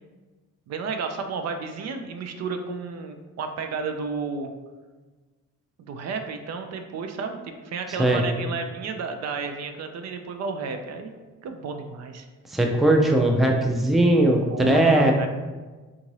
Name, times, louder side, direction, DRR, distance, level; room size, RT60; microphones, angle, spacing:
voice 1, 0.7-4.5 5.8-11.1 11.4-12.3 14.5-15.3, right 4 dB, 60° right, 6 dB, 0.5 m, -32 dB
voice 2, 12.5-15.3, right 1 dB, ahead, 2 dB, 0.4 m, -19 dB
3.6 x 2.6 x 3.1 m, 1.3 s
cardioid pair, 90°, 30 cm